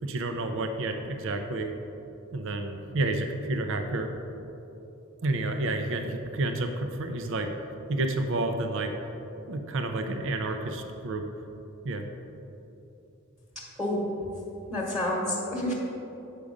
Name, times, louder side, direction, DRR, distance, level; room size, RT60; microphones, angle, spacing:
voice 1, 0.0-1.7 2.3-4.1 5.2-7.5 7.9-8.9 9.5-11.2 11.8-12.1, right 2 dB, 60° right, 5 dB, 0.6 m, -30 dB
voice 2, 14.7-15.7, left 1 dB, ahead, -5 dB, 1.2 m, -28 dB
8.4 x 6.1 x 5.1 m, 2.9 s
head